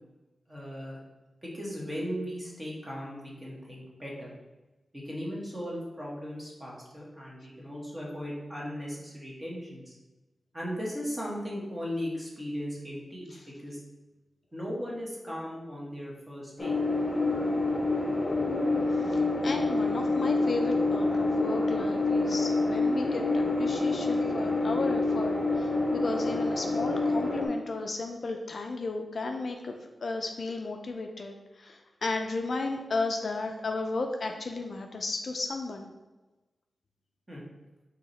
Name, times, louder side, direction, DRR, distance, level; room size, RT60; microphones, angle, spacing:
voice 1, 0.5-1.0 1.4-4.3 4.9-10.0 10.5-13.8 14.5-16.8 37.3-37.4, equal, 15° right, -4 dB, 1.1 m, -37 dB
sound 1, 16.6-27.5, left 2 dB, 30° left, 0.7 m, -27 dB
voice 2, 19.1-29.7 30.0-35.9, left 3 dB, 50° left, 4 dB, 0.3 m, -34 dB
4.8 x 2.8 x 3.9 m, 1.1 s
wide cardioid pair, 165°, 0 cm